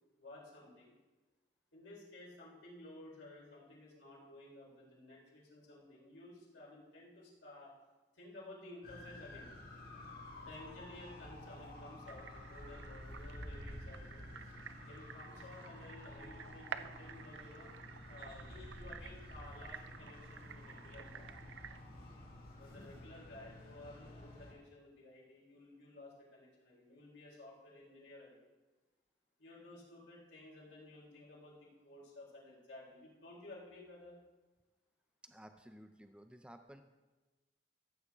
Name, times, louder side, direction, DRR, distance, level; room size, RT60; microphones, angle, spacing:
voice 1, 0.2-0.9 1.7-7.7 8.1-9.5 10.4-14.2 14.9-17.7 18.1-21.3 22.6-28.5 29.4-34.2, left 2 dB, 75° left, -4 dB, 3.9 m, -54 dB
sound 1, 8.8-24.5, left 1 dB, 50° left, 2.0 m, -51 dB
sound 2, 12.1-21.8, right 7 dB, 85° right, 0.5 m, -52 dB
voice 2, 35.2-36.8, equal, 5° right, 7 dB, 0.5 m, -55 dB
14.5 x 8.3 x 3.6 m, 1.2 s
head